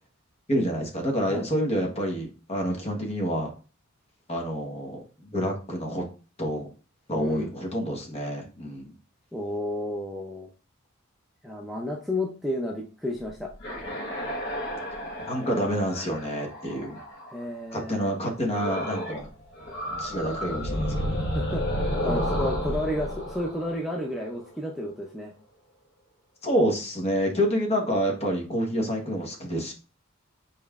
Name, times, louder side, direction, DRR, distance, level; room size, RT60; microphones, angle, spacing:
voice 1, 0.5-3.5 4.3-6.0 6.4-6.7 7.1-8.9 15.3-17.0 17.7-19.3 19.9-21.2 22.0-22.3 26.4-29.7, equal, 30° left, 1 dB, 1.1 m, -28 dB
voice 2, 7.1-7.5 9.3-10.5 11.4-13.5 16.8-16.9 17.3-18.1 21.3-21.6 22.0-25.3, left 1 dB, ahead, -1 dB, 0.5 m, -31 dB
sound 1, 13.5-17.4 18.5-19.3 19.6-24.4, equal, 55° left, 1.2 m, -31 dB
5.4 x 4.2 x 2.4 m, 0.35 s
head